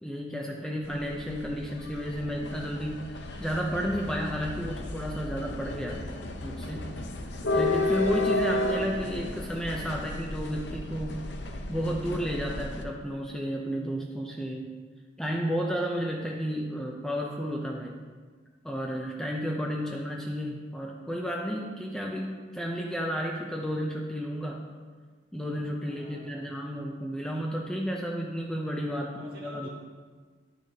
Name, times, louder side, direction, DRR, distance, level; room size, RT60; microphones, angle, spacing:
voice 1, 0.0-6.1 6.4-6.9 7.5-11.3 11.7-14.7 15.2-18.0 18.6-24.7 25.3-29.7, equal, 5° left, -1 dB, 0.5 m, -32 dB
sound 1, 0.8-12.8, left 2 dB, 65° left, 0.6 m, -33 dB
voice 2, 25.8-26.8 28.9-29.7, equal, 55° right, -6 dB, 2.0 m, -50 dB
10.5 x 6.3 x 2.8 m, 1.5 s
head